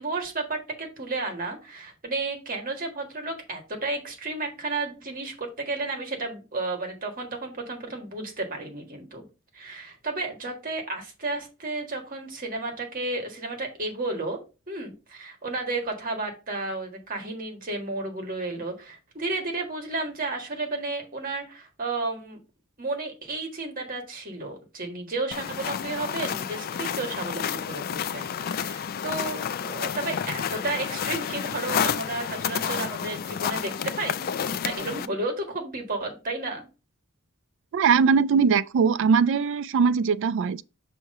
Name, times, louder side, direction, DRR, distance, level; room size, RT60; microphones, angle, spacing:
voice 1, 0.0-9.2 9.5-14.4 14.7-22.4 22.8-34.3 34.6-36.7, right 2 dB, 40° right, 1.6 m, -32 dB
sound 1, 25.3-35.1, left 8 dB, 45° left, 0.3 m, -30 dB
voice 2, 37.7-40.6, right 6 dB, 60° right, 0.3 m, -21 dB
5.9 x 3.1 x 5.3 m
head